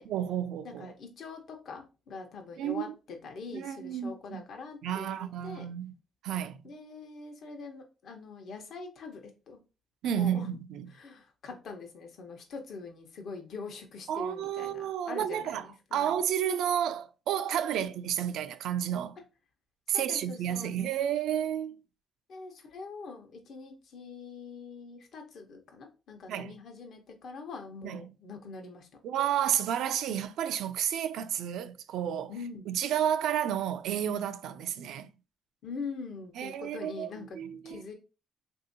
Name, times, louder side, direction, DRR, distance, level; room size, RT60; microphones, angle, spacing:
voice 1, 0.1-0.9 2.6-2.9 3.5-4.4 4.8-5.9 6.2-6.7 10.0-10.9 14.1-19.2 19.9-21.8 26.3-26.5 27.8-28.1 29.0-32.3 32.7-35.1 36.4-37.1 37.3-37.8, right 10 dB, 80° right, 0.3 m, -31 dB
voice 2, 0.6-5.7 6.6-9.2 9.5-9.6 10.2-10.5 10.9-16.2 17.7-17.9 19.9-20.9 22.3-28.9 32.3-32.6 35.6-37.4 37.6-37.9, left 4 dB, 65° left, 0.9 m, -43 dB
3.5 x 2.7 x 2.7 m
cardioid pair, 90°, 0 cm